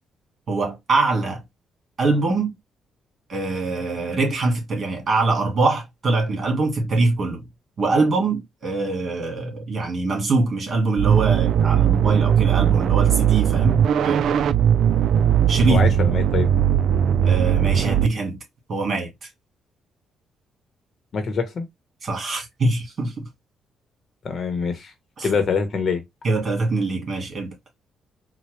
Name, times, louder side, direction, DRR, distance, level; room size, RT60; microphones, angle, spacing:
voice 1, 0.5-1.4 2.0-2.5 3.3-7.4 7.8-14.4 15.5-15.8 17.2-18.4 18.7-19.3 22.0-23.3 25.2-25.3 26.2-27.5, right 3 dB, 45° right, 2.0 m, -23 dB
sound 1, 11.0-18.1, right 9 dB, 70° right, 0.3 m, -18 dB
voice 2, 15.7-16.5 21.1-21.6 24.2-24.9 25.2-26.0, left 5 dB, 50° left, 0.9 m, -24 dB
4.2 x 2.2 x 3.1 m
cardioid pair, 90°, 0 cm